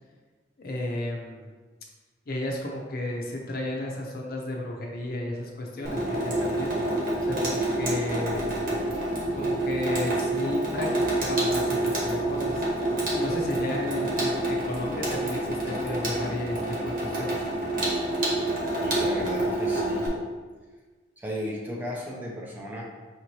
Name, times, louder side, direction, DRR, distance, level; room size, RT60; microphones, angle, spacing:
voice 1, 0.6-1.5 2.3-6.7 7.2-8.5 9.3-10.9 11.2-12.6 13.1-17.4, left 1 dB, 55° left, 0 dB, 0.6 m, -33 dB
Water tap faucet / Sink (filling or washing), 5.8-20.1, right 1 dB, 50° right, 1.0 m, -27 dB
voice 2, 18.7-20.1 21.2-22.8, equal, 10° right, -3 dB, 0.5 m, -35 dB
5.0 x 2.8 x 3.0 m, 1.3 s
head